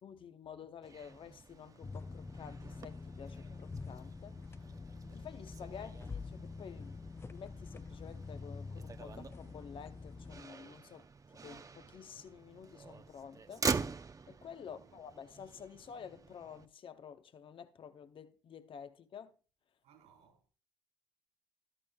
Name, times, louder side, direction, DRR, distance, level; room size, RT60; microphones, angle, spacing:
voice 1, 0.0-4.4 5.1-7.0 7.3-11.1 11.4-13.7 14.3-19.3, left 7 dB, 50° left, 0.7 m, -50 dB
Motor vehicle (road), 0.8-16.7, right 5 dB, 30° right, 0.6 m, -44 dB
sound 1, 1.8-10.4, left 4 dB, 20° left, 0.3 m, -46 dB
voice 2, 14.6-15.0 19.8-20.5, right 8 dB, 75° right, 3.6 m, -65 dB
12.5 x 10.0 x 2.3 m
hypercardioid pair, 45°, 11 cm